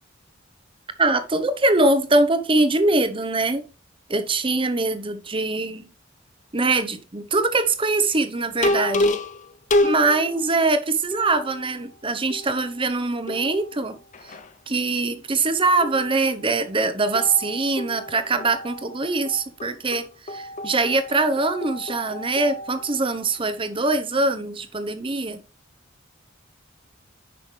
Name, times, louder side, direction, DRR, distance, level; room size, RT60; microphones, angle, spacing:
voice 1, 1.0-3.6 4.1-5.9 6.5-9.2 9.8-14.0 14.2-14.3 14.7-25.4, right 3 dB, 25° right, 1.0 m, -23 dB
sound 1, 8.6-10.5 11.1-11.9 12.3-12.9 13.3-14.5 15.8-16.6 17.1-23.4, left 1 dB, 40° left, 0.7 m, -29 dB
10.0 x 5.6 x 3.3 m
head